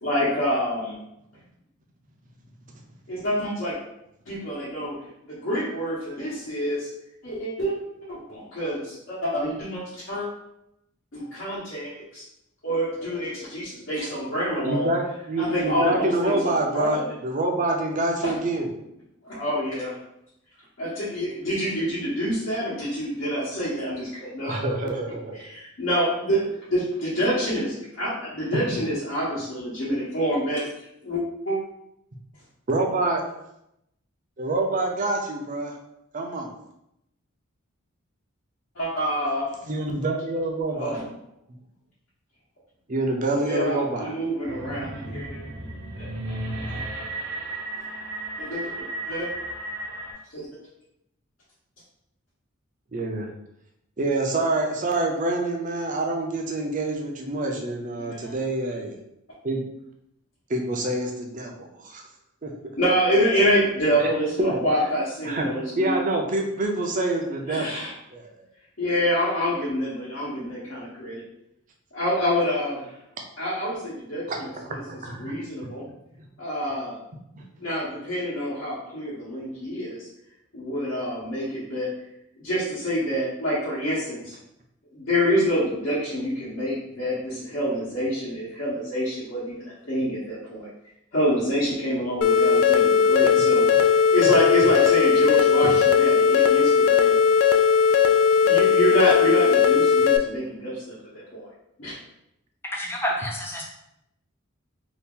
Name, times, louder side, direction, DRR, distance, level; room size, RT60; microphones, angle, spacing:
voice 1, 0.0-1.0 3.1-3.7 4.3-4.9 5.3-6.9 7.2-7.8 8.1-10.3 11.1-12.2 12.6-14.9 15.4-17.1 18.2-18.3 19.2-20.0 20.8-24.6 25.4-30.6 31.0-31.6 38.7-39.5 40.7-41.0 43.4-45.4 46.0-46.4 48.4-48.7 49.1-49.3 50.3-50.5 58.1-58.3 62.8-66.0 67.5-67.9 68.8-71.2 71.9-72.9 73.4-74.8 75.2-75.8 76.4-77.0 77.6-80.1 80.5-81.9 82.4-84.4 84.9-90.7 91.1-93.7 94.1-97.2 98.4-101.5 101.8-101.9, equal, 65° left, -10 dB, 1.0 m, -27 dB
voice 2, 14.6-18.7 24.5-25.4 32.7-33.2 34.4-35.7 36.1-36.5 39.6-41.1 42.9-44.2 52.9-53.3 54.0-59.0 59.4-59.6 60.5-62.1 62.4-62.5 64.0-64.1 64.4-64.7 65.2-65.5 65.8-67.7 68.1-68.5 74.3-75.3 77.4-77.5 94.2-94.3 95.6-95.7, right 2 dB, 40° right, 2 dB, 0.5 m, -26 dB
sound 1, 44.4-50.1, right 2 dB, 75° right, 0.8 m, -34 dB
sound 2, 92.2-100.2, left 6 dB, 80° left, 0.3 m, -18 dB
voice 3, 102.6-103.6, equal, 10° left, -2 dB, 0.5 m, -29 dB
2.8 x 2.4 x 3.5 m, 0.82 s
head